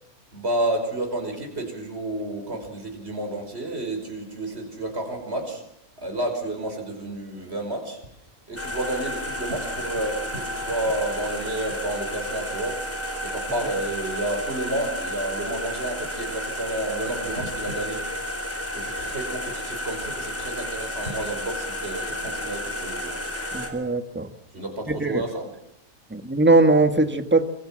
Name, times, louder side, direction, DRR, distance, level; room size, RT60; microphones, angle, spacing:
voice 1, 0.3-5.6 6.0-8.0 8.5-12.8 13.2-18.1 18.7-23.1 24.5-25.5, right 1 dB, 40° right, 4 dB, 5.8 m, -30 dB
sound 1, 8.6-23.7, equal, 10° left, 4.2 m, -32 dB
voice 2, 23.5-24.3 24.9-25.2 26.1-27.4, right 2 dB, 5° right, 9 dB, 1.6 m, -20 dB
27.0 x 24.0 x 7.6 m, 0.78 s
omnidirectional pair, 1.6 m